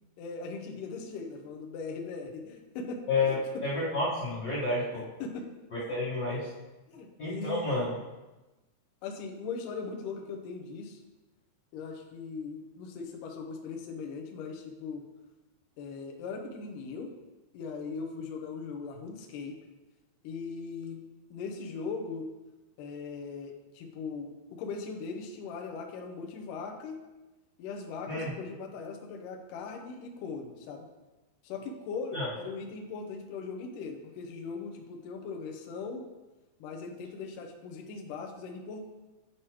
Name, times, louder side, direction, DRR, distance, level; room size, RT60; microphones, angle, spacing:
voice 1, 0.2-3.4 5.2-5.5 5.9-6.0 6.9-7.7 9.0-11.0 11.7-15.0 15.8-17.1 17.5-19.6 20.2-21.0 21.3-22.3 22.8-27.0 27.6-30.9 31.4-36.0 36.6-38.8, left 4 dB, 90° left, 2 dB, 1.8 m, -39 dB
voice 2, 3.6-5.0 5.7-6.5 7.2-7.9 28.1-28.3 32.1-32.3, left 3 dB, 60° left, -10 dB, 1.7 m, -30 dB
10.0 x 4.8 x 3.0 m, 1.1 s
omnidirectional pair, 4.9 m